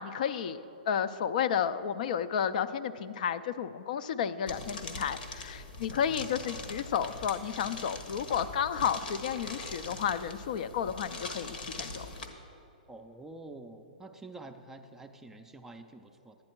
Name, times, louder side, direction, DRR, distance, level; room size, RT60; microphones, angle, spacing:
voice 1, 0.0-12.1, left 8 dB, 60° left, 12 dB, 0.4 m, -32 dB
sound 1, 4.5-12.3, left 3 dB, 85° left, 1.3 m, -42 dB
voice 2, 12.9-16.4, right 2 dB, 10° right, 5 dB, 0.4 m, -47 dB
11.0 x 9.7 x 4.5 m, 3.0 s
hypercardioid pair, 135°, 5 cm